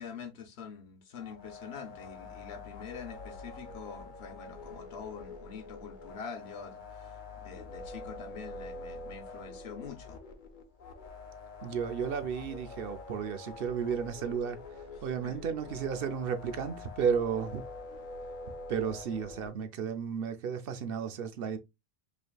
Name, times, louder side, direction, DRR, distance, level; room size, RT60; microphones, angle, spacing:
voice 1, 0.0-10.2 14.9-15.4, left 6 dB, 80° left, 1.1 m, -45 dB
sound 1, 1.2-19.5, left 3 dB, 55° left, 0.8 m, -46 dB
voice 2, 11.6-17.6 18.7-21.6, right 7 dB, 65° right, 0.8 m, -33 dB
4.9 x 2.9 x 2.3 m
omnidirectional pair, 1.1 m